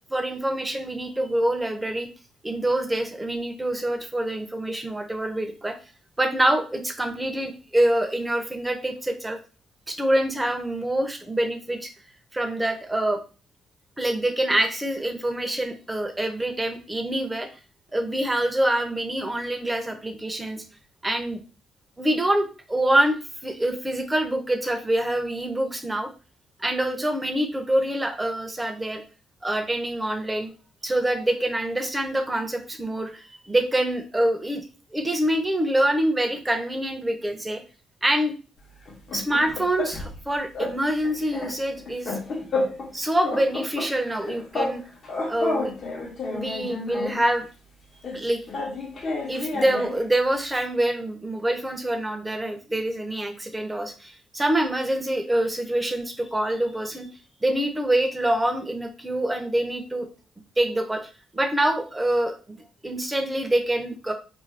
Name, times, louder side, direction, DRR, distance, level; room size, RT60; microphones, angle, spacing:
voice 1, 0.1-2.1 2.4-5.7 6.2-9.4 9.9-11.9 12.3-13.2 14.0-17.5 17.9-20.6 21.0-21.4 22.0-23.2 23.4-26.1 26.6-29.0 29.4-30.5 30.8-34.6 34.9-37.6 38.0-38.4 39.1-42.5 42.9-44.8 45.3-45.7 46.3-47.5 48.1-48.4 49.3-57.1 57.4-60.1 60.6-62.6 62.8-64.1, right 1 dB, 15° right, 6 dB, 0.6 m, -25 dB
sound 1, 38.9-40.2 40.5-40.8 41.0-42.9 43.2-44.8 45.0-47.2 48.0-50.0, left 3 dB, 55° left, 0.9 m, -30 dB
2.5 x 2.2 x 3.2 m, 0.35 s
cardioid pair, 90°, 0 cm